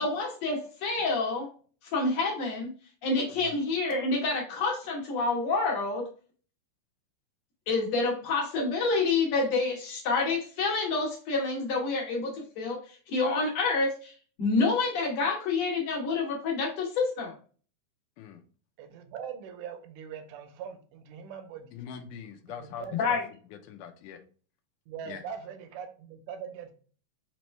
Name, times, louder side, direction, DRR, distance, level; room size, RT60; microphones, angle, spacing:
voice 1, 0.0-1.5 1.8-2.7 3.0-6.1 7.7-17.3 22.9-23.2, left 3 dB, 65° left, -1 dB, 2.1 m, -28 dB
voice 2, 18.8-21.7 22.6-23.0 24.9-26.7, right 7 dB, 80° right, 7 dB, 2.1 m, -41 dB
voice 3, 21.7-23.2 23.5-24.2 25.0-25.2, left 8 dB, 80° left, 6 dB, 2.1 m, -43 dB
5.3 x 3.0 x 3.2 m, 0.40 s
omnidirectional pair, 3.7 m